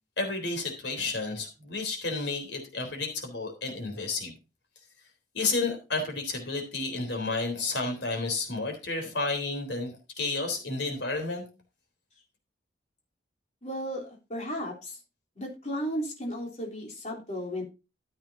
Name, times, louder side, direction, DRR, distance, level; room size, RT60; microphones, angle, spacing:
voice 1, 0.2-4.3 5.3-11.4, left 3 dB, 65° left, 4 dB, 3.7 m, -31 dB
voice 2, 13.6-15.0 15.3-17.6, equal, 35° left, -2 dB, 3.6 m, -34 dB
13.5 x 8.5 x 2.8 m, 0.29 s
head